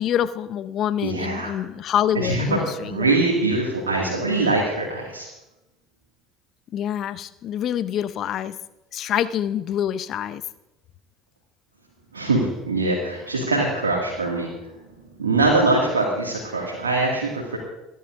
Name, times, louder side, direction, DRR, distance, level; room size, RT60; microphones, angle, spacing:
voice 1, 0.0-3.2 6.7-8.6 8.9-10.4, left 10 dB, 50° left, 14 dB, 0.8 m, -26 dB
voice 2, 1.0-1.5 2.1-5.3 12.1-14.5 15.2-17.6, right 2 dB, 90° right, -2 dB, 2.2 m, -23 dB
29.0 x 11.0 x 2.6 m, 0.97 s
hypercardioid pair, 65°, 0 cm